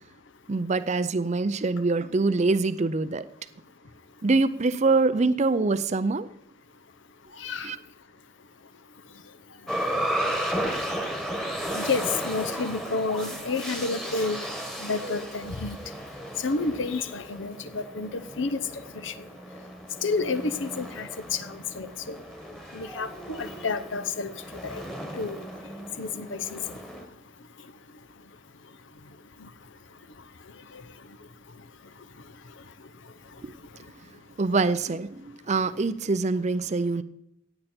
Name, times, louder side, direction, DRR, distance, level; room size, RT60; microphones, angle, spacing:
voice 1, 0.5-3.3 4.2-6.3 7.6-7.8 33.4-33.5 34.4-37.0, right 3 dB, 35° right, 0.5 m, -24 dB
voice 2, 7.4-7.7 11.7-14.4 14.8-15.8 16.4-18.6 19.0-19.1 20.0-22.2 22.7-24.3 24.6-24.8 25.2-25.4 26.0-26.6, left 4 dB, 65° left, 0.8 m, -30 dB
sound 1, 9.7-27.0, equal, ahead, 1.5 m, -34 dB
16.5 x 8.9 x 4.4 m
head